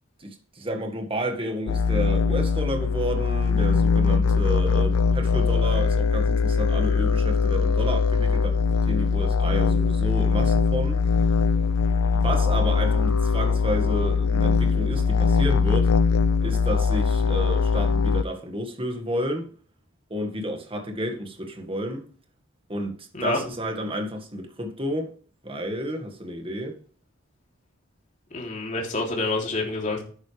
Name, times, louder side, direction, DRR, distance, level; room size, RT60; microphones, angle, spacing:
voice 1, 0.2-8.6 8.9-11.0 12.1-15.9 16.4-19.5 20.1-22.1 22.7-25.1 25.4-26.8, equal, 25° right, 1.9 m, -31 dB
sound 1, 1.7-18.2, left 5 dB, 90° left, 0.4 m, -21 dB
voice 2, 28.3-30.0, left 2 dB, 35° left, 3.4 m, -27 dB
11.5 x 9.6 x 3.5 m
head